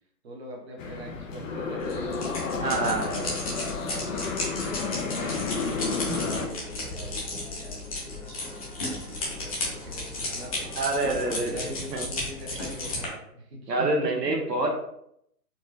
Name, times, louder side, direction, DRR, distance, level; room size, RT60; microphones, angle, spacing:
voice 1, 0.2-2.0 2.6-3.6 3.8-5.1 5.9-10.7 11.1-14.3, right 1 dB, 40° right, -1 dB, 1.2 m, -43 dB
sound 1, 0.8-6.5, left 4 dB, 55° left, 0.6 m, -31 dB
sound 2, 1.8-13.1, left 2 dB, 25° left, 0.8 m, -34 dB
voice 2, 2.6-3.2 10.7-12.0 13.7-14.7, right 2 dB, 90° right, 1 dB, 1.2 m, -27 dB
4.4 x 2.5 x 3.2 m, 0.74 s
hypercardioid pair, 155°, 47 cm